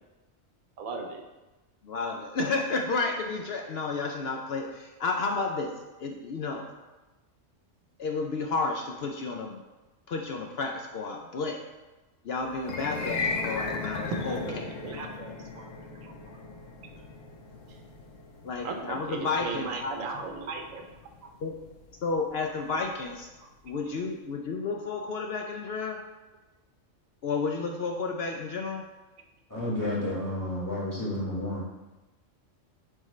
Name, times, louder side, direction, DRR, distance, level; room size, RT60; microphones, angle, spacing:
voice 1, 0.8-1.2 14.2-16.1 18.6-20.9, right 4 dB, 90° right, 4 dB, 1.2 m, -37 dB
voice 2, 1.8-5.7 6.0-6.7 8.0-9.6 10.1-11.6 12.2-14.7 18.4-20.2 21.4-21.5 22.0-23.3 23.6-26.0 27.2-28.8, left 4 dB, 60° left, 2 dB, 0.7 m, -31 dB
sound 1, 12.6-22.9, left 4 dB, 80° left, 1.2 m, -37 dB
voice 3, 29.5-31.6, left 1 dB, 15° left, -6 dB, 1.5 m, -31 dB
8.8 x 3.7 x 3.1 m, 1.1 s
omnidirectional pair, 1.3 m